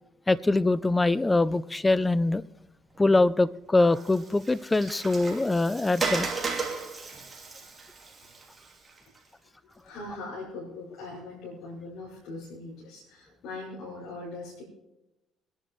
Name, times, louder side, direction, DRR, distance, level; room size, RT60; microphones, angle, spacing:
voice 1, 0.3-2.4 3.0-6.3, left 2 dB, 15° left, 17 dB, 0.5 m, -23 dB
Water, 3.8-9.2, right 4 dB, 25° right, 3.0 m, -35 dB
voice 2, 9.6-14.6, left 2 dB, 80° left, -6 dB, 5.7 m, -41 dB
24.5 x 11.0 x 3.2 m, 0.98 s
cardioid pair, 90°, 0 cm